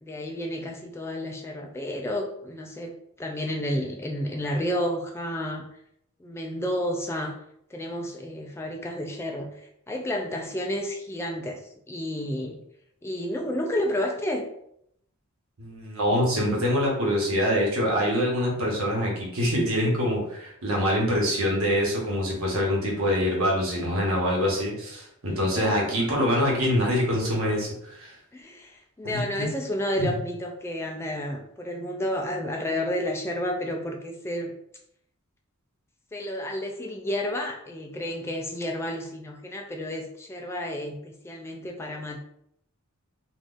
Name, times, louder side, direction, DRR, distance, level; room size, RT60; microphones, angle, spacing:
voice 1, 0.0-5.6 6.2-7.4 7.7-9.5 9.9-11.6 11.9-12.6 13.0-14.4 25.6-26.0 28.3-34.5 36.1-42.2, left 1 dB, 10° left, 2 dB, 0.3 m, -31 dB
voice 2, 15.6-28.1 29.0-29.4 30.0-30.1, equal, 75° right, -2 dB, 1.1 m, -25 dB
3.8 x 2.4 x 2.5 m, 0.73 s
head